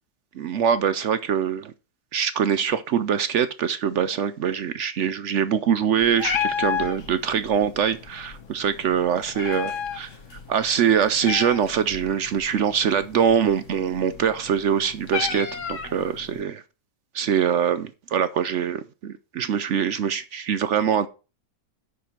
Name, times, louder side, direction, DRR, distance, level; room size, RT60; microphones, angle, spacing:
voice 1, 0.3-1.7 2.1-10.1 10.5-16.6 17.1-21.1, right 8 dB, 70° right, 0.7 m, -23 dB
Meow, 6.0-16.4, left 7 dB, 50° left, 1.4 m, -33 dB
8.4 x 6.2 x 5.9 m
omnidirectional pair, 1.9 m